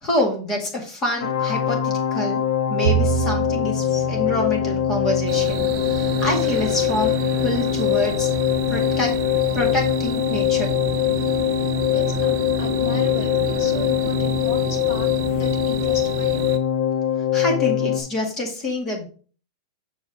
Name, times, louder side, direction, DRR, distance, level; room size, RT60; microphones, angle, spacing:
voice 1, 0.0-2.4 2.7-8.3 8.7-9.2 9.5-10.7 17.3-19.0, left 1 dB, 15° left, 1 dB, 2.0 m, -26 dB
sound 1, 1.2-18.0, left 10 dB, 70° left, 1.2 m, -22 dB
Bowed string instrument, 2.8-9.2, right 11 dB, 70° right, 1.0 m, -30 dB
sound 2, 5.3-16.6, right 9 dB, 30° right, 0.6 m, -31 dB
voice 2, 11.8-13.3 13.6-16.5, left 4 dB, 50° left, 2 dB, 2.3 m, -35 dB
6.5 x 4.6 x 4.7 m, 0.39 s
supercardioid pair, 175°, 2 cm